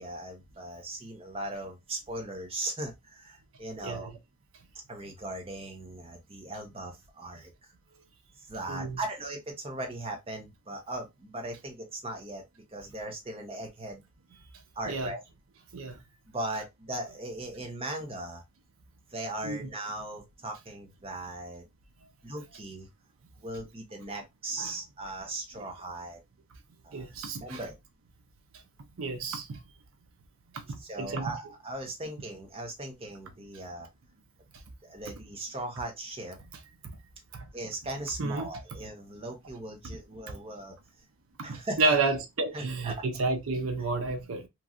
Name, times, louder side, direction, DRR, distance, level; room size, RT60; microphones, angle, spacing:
voice 1, 0.0-4.1 4.9-7.7 8.5-12.4 12.7-14.0 14.8-15.2 16.3-18.4 19.1-21.6 22.2-22.9 23.4-26.2 26.8-27.8 30.8-33.9 34.8-36.4 37.5-40.8 41.4-42.0 42.5-42.9, right 1 dB, 30° right, 0.8 m, -38 dB
voice 2, 8.7-9.0 14.9-15.1 15.7-16.0 19.4-19.7 24.1-24.2 24.6-24.8 25.6-25.7 26.9-27.6 29.0-29.6 30.7-31.3 36.8-37.0 37.3-37.5 38.2-38.5 41.5-44.5, right 3 dB, 85° right, 0.6 m, -31 dB
3.0 x 2.6 x 2.4 m
head